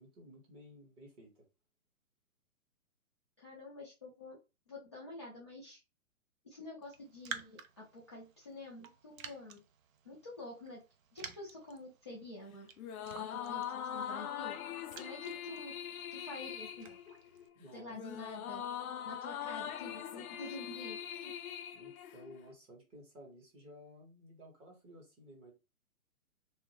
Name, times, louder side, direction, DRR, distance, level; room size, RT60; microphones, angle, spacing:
voice 1, 0.0-1.4 17.5-18.0 21.7-25.5, equal, 15° right, 0.6 m, -55 dB
voice 2, 3.4-4.4 4.7-5.8 6.4-9.6 10.0-10.8 11.1-12.7 13.2-14.6 14.9-15.8 16.1-17.0 17.7-18.6 19.0-21.3, left 2 dB, 20° left, 0.3 m, -48 dB
Raindrop, 6.8-17.5, right 7 dB, 65° right, 0.5 m, -52 dB
sound 1, 12.8-22.5, left 9 dB, 75° left, 0.5 m, -42 dB
2.6 x 2.0 x 3.1 m
hypercardioid pair, 130°, 43 cm